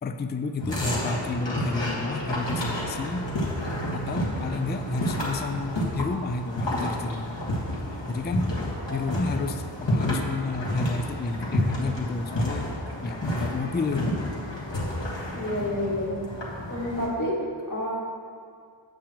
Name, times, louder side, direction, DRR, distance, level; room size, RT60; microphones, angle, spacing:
voice 1, 0.0-3.3 3.9-7.4 8.1-8.5 8.9-12.7 13.0-14.4, left 3 dB, 25° left, 7 dB, 0.3 m, -31 dB
sound 1, 0.6-17.1, equal, 65° left, 1.7 m, -30 dB
voice 2, 15.3-16.3 16.7-17.9, left 1 dB, 40° left, -4 dB, 2.0 m, -29 dB
8.7 x 7.6 x 3.0 m, 2.2 s
wide cardioid pair, 50°, 47 cm